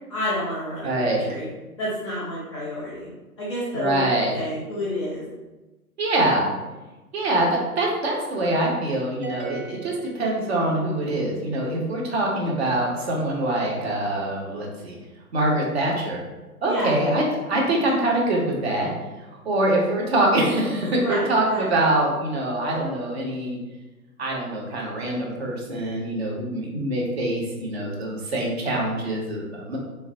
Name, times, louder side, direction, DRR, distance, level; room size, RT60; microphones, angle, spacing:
voice 1, 0.1-1.5 1.8-3.1 3.4-4.0 4.3-5.2 16.7-16.9 21.0-21.7, left 1 dB, 20° left, -7 dB, 0.5 m, -29 dB
voice 2, 0.8-1.2 3.7-4.3 6.0-6.5 7.1-15.0 15.3-16.2 16.6-18.9 19.5-23.6 24.2-29.8, right 1 dB, 45° right, -2 dB, 0.6 m, -24 dB
sound 1, 9.2-10.9, right 5 dB, 90° right, 0.6 m, -37 dB
3.1 x 2.0 x 2.6 m, 1.1 s
figure-of-eight pair, 125°, 45 cm